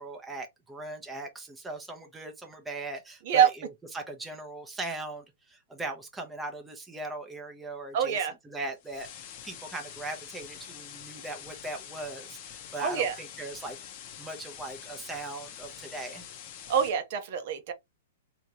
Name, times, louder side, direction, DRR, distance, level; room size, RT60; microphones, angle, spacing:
voice 1, 0.0-3.7 3.9-8.2 8.4-13.8 14.2-16.2, right 2 dB, 5° right, 0.8 m, -39 dB
voice 2, 7.9-8.3 12.8-13.1 16.7-17.7, right 8 dB, 50° right, 0.8 m, -25 dB
sound 1, 8.8-16.9, left 9 dB, 40° left, 0.8 m, -45 dB
3.6 x 2.9 x 2.9 m
hypercardioid pair, 160°, 0 cm